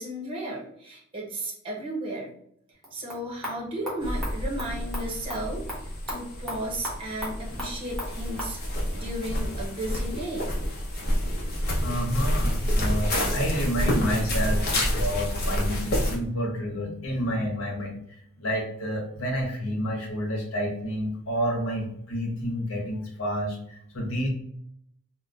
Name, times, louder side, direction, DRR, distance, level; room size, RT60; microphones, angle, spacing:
voice 1, 0.0-2.3 2.9-10.5, right 1 dB, 25° right, -4 dB, 0.8 m, -34 dB
sound 1, 2.7-8.6, equal, ahead, 1.0 m, -39 dB
sound 2, 4.0-16.2, equal, 50° left, 0.8 m, -28 dB
voice 2, 11.8-24.3, equal, 85° left, 0 dB, 1.0 m, -29 dB
3.8 x 2.1 x 2.4 m, 0.71 s
head